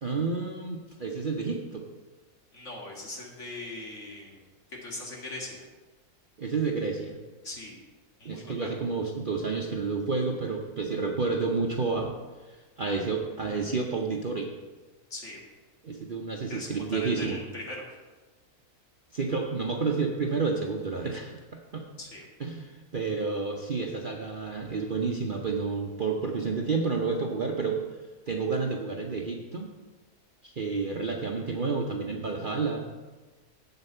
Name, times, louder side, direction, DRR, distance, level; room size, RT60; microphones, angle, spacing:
voice 1, 0.0-1.8 6.4-7.2 8.2-12.1 12.5-14.5 15.8-17.4 19.1-21.4 21.7-21.8 22.4-27.8 28.3-29.7 30.4-32.8, right 4 dB, 45° right, 0 dB, 0.7 m, -30 dB
voice 2, 2.5-4.4 4.8-5.7 7.4-7.8 8.2-8.7 15.1-15.4 16.5-17.8 22.0-22.2, left 2 dB, 50° left, -2 dB, 2.3 m, -40 dB
8.1 x 8.0 x 5.5 m, 1.3 s
omnidirectional pair, 1.6 m